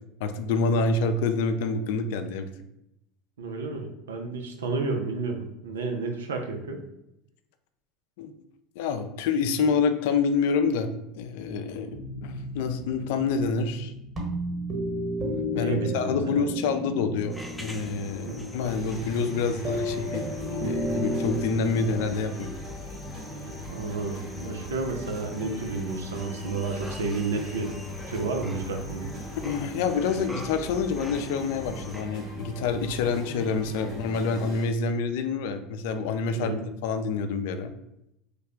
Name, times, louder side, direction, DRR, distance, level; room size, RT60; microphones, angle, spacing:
voice 1, 0.2-2.5 8.2-8.3 8.8-13.9 15.2-22.5 29.4-36.5 36.8-37.7, left 4 dB, 70° left, 8 dB, 0.3 m, -27 dB
voice 2, 3.4-6.8 15.6-16.4 18.3-18.5 23.7-27.7 28.1-29.0 36.4-36.6, right 3 dB, 85° right, 4 dB, 0.5 m, -31 dB
sound 1, 11.9-22.2, equal, 25° right, 1.3 m, -33 dB
sound 2, 17.3-32.0, left 1 dB, 10° left, 0.5 m, -43 dB
sound 3, 18.6-34.6, left 1 dB, 55° right, 1.5 m, -40 dB
3.2 x 2.2 x 3.6 m, 0.83 s
hypercardioid pair, 80°, 0 cm